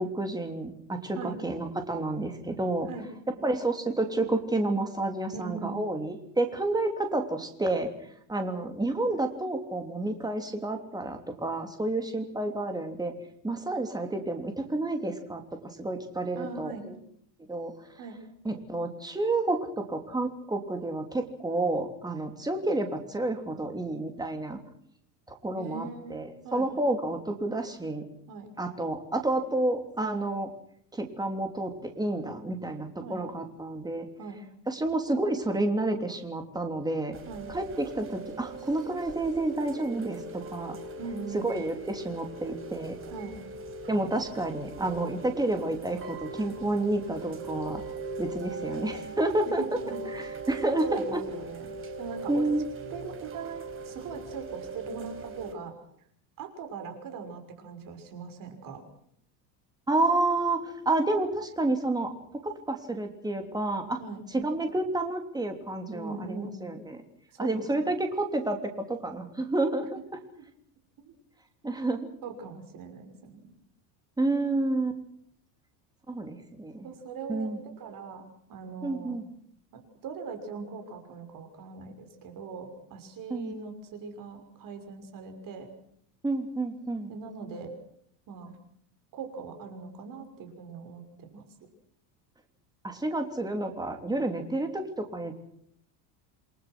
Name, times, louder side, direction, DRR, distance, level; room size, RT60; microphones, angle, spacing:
voice 1, 0.0-2.9 3.3-7.9 8.3-13.1 13.4-16.9 17.5-17.7 18.4-24.6 25.3-28.0 28.6-30.5 30.9-34.1 34.7-37.2 37.5-40.8 41.3-43.0 43.9-47.8 48.2-49.6 50.1-51.2 52.3-52.7 59.9-62.1 62.4-64.0 64.3-67.0 67.4-70.2 71.6-72.1 74.2-75.0 76.1-76.9 77.3-77.6 78.8-79.2 83.3-83.5 86.2-87.1 92.8-95.3, right 2 dB, 10° right, 5 dB, 3.1 m, -30 dB
voice 2, 5.3-5.9 16.4-16.9 18.0-18.2 25.5-26.7 28.3-28.6 33.0-33.2 34.2-34.4 37.3-37.5 41.0-41.5 43.1-43.3 49.6-50.0 50.8-51.7 52.0-52.5 52.9-55.7 56.4-58.8 64.0-64.2 65.9-66.6 67.3-67.7 71.0-71.1 72.2-73.5 76.4-76.5 76.8-78.2 78.5-79.2 79.7-85.7 87.1-87.7 88.3-88.5 89.1-91.4, right 4 dB, 40° right, 6 dB, 6.0 m, -40 dB
Chime / Rain, 37.1-55.5, right 3 dB, 25° right, 4.7 m, -40 dB
29.0 x 21.5 x 6.2 m, 0.67 s
cardioid pair, 150°, 49 cm